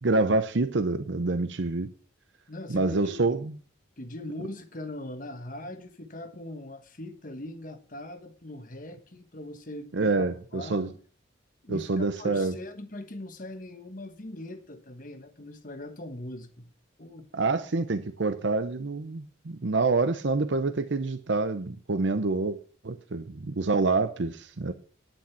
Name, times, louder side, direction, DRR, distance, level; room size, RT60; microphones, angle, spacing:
voice 1, 0.0-1.9 2.7-3.5 9.9-10.9 11.7-12.5 17.3-22.6 22.8-24.7, right 3 dB, 65° right, 0.7 m, -27 dB
voice 2, 2.5-3.2 4.0-11.0 11.6-16.7 17.0-17.3, left 1 dB, 40° left, 1.3 m, -41 dB
10.0 x 9.0 x 5.7 m
head